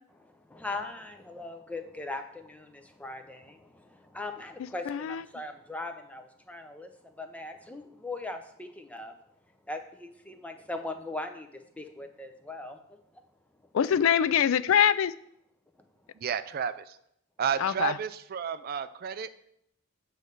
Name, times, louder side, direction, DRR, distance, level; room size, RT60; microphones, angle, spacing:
voice 1, 0.5-9.1 9.7-11.5 11.8-12.8, left 2 dB, 5° left, 6 dB, 0.5 m, -39 dB
voice 2, 4.6-5.2 13.7-15.1 17.6-18.0, left 8 dB, 70° left, 17 dB, 0.3 m, -24 dB
voice 3, 16.2-17.0 17.4-19.3, right 7 dB, 45° right, 13 dB, 0.3 m, -31 dB
8.5 x 3.2 x 6.6 m, 0.75 s
head